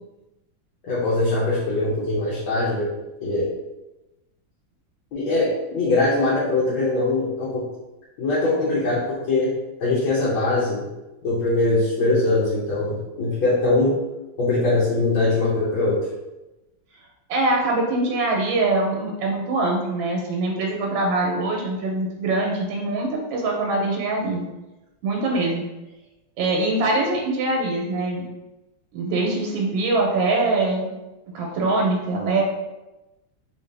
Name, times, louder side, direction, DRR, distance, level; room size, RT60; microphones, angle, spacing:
voice 1, 0.8-2.9 3.2-3.5 5.1-7.6 8.2-9.5 9.8-10.8 11.2-14.0 14.4-16.0, left 2 dB, 80° left, -9 dB, 1.7 m, -22 dB
voice 2, 17.3-24.4 25.0-25.6 26.4-28.2 28.9-30.9 31.3-32.4, right 2 dB, 80° right, 0 dB, 1.4 m, -23 dB
3.6 x 2.7 x 3.2 m, 1.0 s
omnidirectional pair, 2.1 m